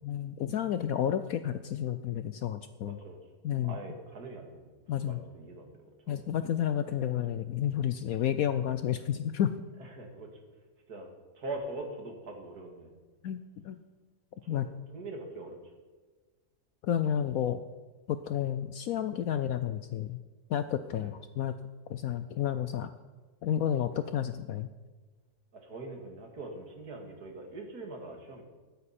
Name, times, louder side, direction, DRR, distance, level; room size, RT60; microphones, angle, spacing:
voice 1, 0.0-3.0 3.4-3.8 4.9-5.2 6.1-9.5 13.2-13.8 14.5-14.7 16.8-17.6 18.1-20.2 20.5-21.5 21.9-22.9 23.4-24.7, left 10 dB, 70° left, 11 dB, 0.9 m, -31 dB
voice 2, 2.8-3.2 3.6-4.6 4.9-6.2 9.8-10.4 10.9-12.9 14.5-15.6 21.0-21.1 25.5-28.4, right 2 dB, 60° right, 2 dB, 2.5 m, -43 dB
14.5 x 12.5 x 4.3 m, 1.4 s
omnidirectional pair, 1.8 m